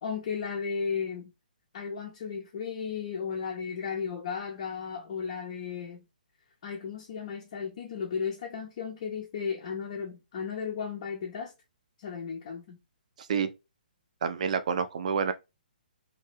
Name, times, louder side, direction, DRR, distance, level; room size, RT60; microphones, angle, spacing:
voice 1, 0.0-1.3 1.7-6.0 6.6-11.5 12.0-12.8, left 6 dB, 45° left, 0.5 m, -35 dB
voice 2, 13.2-13.5 14.2-15.3, right 6 dB, 50° right, 0.4 m, -28 dB
2.6 x 2.3 x 3.0 m
figure-of-eight pair, 130°, 5 cm